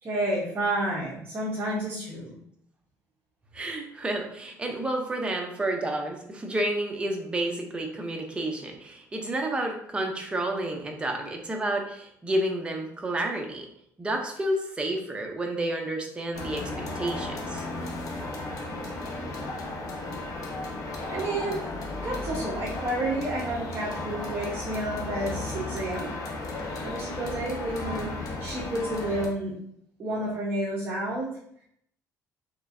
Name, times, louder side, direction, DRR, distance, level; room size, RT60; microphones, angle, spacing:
voice 1, 0.0-2.3 21.1-21.8 22.0-26.1 26.8-29.5 30.0-31.3, right 1 dB, 35° right, -5 dB, 1.0 m, -30 dB
voice 2, 3.5-13.7 14.0-17.6, right 1 dB, 15° right, 2 dB, 0.7 m, -30 dB
sound 1, 16.3-29.3, left 2 dB, 60° left, 0.8 m, -34 dB
4.4 x 3.2 x 2.6 m, 0.70 s
cardioid pair, 145°, 7 cm